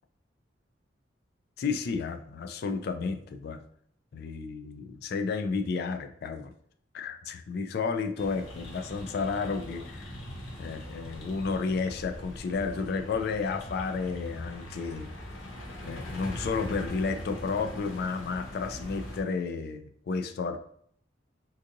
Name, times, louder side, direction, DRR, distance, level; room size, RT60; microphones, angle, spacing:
voice 1, 1.6-3.6 4.1-6.5 6.9-10.2 10.6-15.1 15.8-20.6, left 4 dB, 55° left, 8 dB, 0.3 m, -32 dB
sound 1, 8.2-19.2, left 1 dB, 85° left, 0.8 m, -41 dB
3.9 x 2.6 x 2.5 m, 0.64 s
head